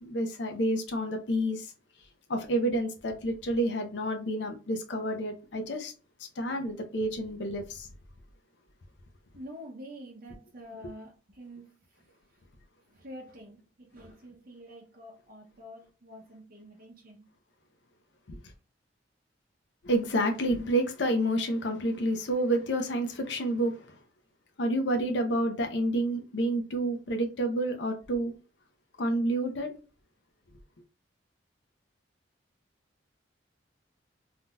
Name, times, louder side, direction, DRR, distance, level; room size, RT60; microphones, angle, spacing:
voice 1, 0.0-1.7 2.3-5.9 6.2-7.9 18.3-18.4 19.8-24.0 24.6-28.3 29.0-29.7, right 1 dB, 70° left, 0.6 m, -29 dB
voice 2, 9.3-12.1 12.9-17.2, equal, 50° right, 0.7 m, -47 dB
3.5 x 2.7 x 2.3 m
head